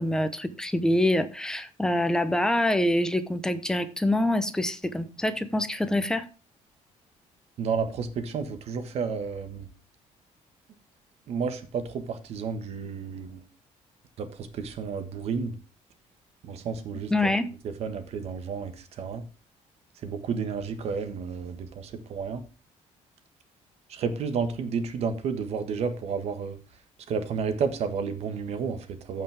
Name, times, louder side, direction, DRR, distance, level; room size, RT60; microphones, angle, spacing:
voice 1, 0.0-6.3 17.1-17.5, left 1 dB, 5° left, 10 dB, 0.8 m, -25 dB
voice 2, 7.6-9.7 11.3-13.4 14.2-15.6 16.4-17.1 17.8-19.2 20.0-22.4 23.9-26.6 27.1-29.2, right 5 dB, 55° right, 9 dB, 1.4 m, -31 dB
15.0 x 5.6 x 3.5 m, 0.34 s
cardioid pair, 160°, 13 cm